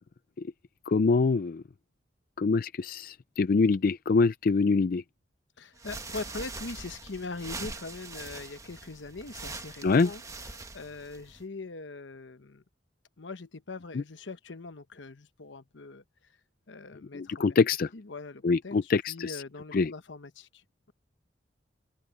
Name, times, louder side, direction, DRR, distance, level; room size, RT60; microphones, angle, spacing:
voice 1, 0.9-1.6 2.4-5.0 9.8-10.1 17.1-17.9 18.4-19.4 19.7-19.9, left 4 dB, 50° left, 0.4 m, -25 dB
voice 2, 5.6-12.6 13.2-16.4 16.7-17.3 17.9-20.9, left 3 dB, 80° left, 1.0 m, -42 dB
sound 1, 5.7-11.4, right 3 dB, 20° right, 1.3 m, -42 dB
open air
head